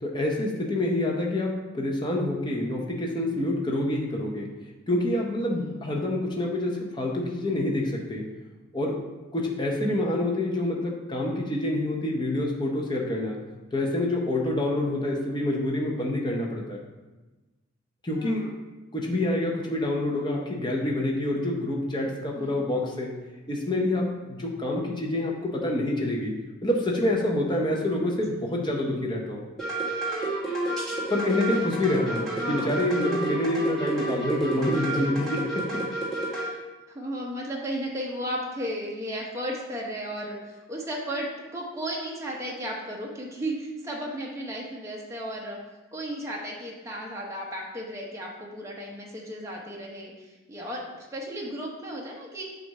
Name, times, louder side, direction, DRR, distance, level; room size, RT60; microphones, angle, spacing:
voice 1, 0.0-4.5 4.9-8.2 8.7-9.0 9.3-13.4 13.7-16.8 18.0-18.5 18.9-23.1 23.5-26.3 26.6-29.4 31.1-35.8, left 1 dB, 20° left, -1 dB, 0.7 m, -27 dB
voice 2, 5.5-5.8 18.2-18.5 22.4-22.6 27.8-28.4 31.5-31.6 31.9-32.7 34.7-34.9 36.3-36.6 36.9-41.3 41.5-45.6 45.9-52.4, equal, 15° right, -3 dB, 0.8 m, -35 dB
sound 1, 29.6-36.5, right 2 dB, ahead, 1.5 m, -30 dB
7.6 x 2.5 x 5.3 m, 1.1 s
head